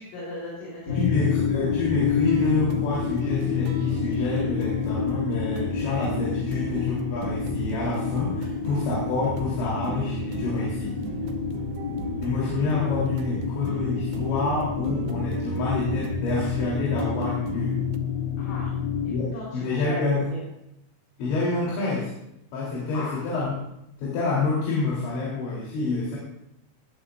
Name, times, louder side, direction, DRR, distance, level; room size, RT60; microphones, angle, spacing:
voice 1, 0.0-1.1 11.7-12.0 18.4-18.7 19.0-20.4 22.9-23.1, left 2 dB, 55° left, -6 dB, 6.0 m, -37 dB
sound 1, 0.9-19.1, left 6 dB, 40° left, 1.6 m, -28 dB
voice 2, 1.0-11.0 12.2-17.8 19.1-20.2 21.2-22.1 22.5-23.5 24.0-26.2, left 3 dB, 75° left, -5 dB, 5.8 m, -28 dB
sound 2, 2.3-18.0, right 8 dB, 75° right, 2.5 m, -38 dB
20.0 x 15.0 x 2.6 m, 0.83 s
omnidirectional pair, 5.4 m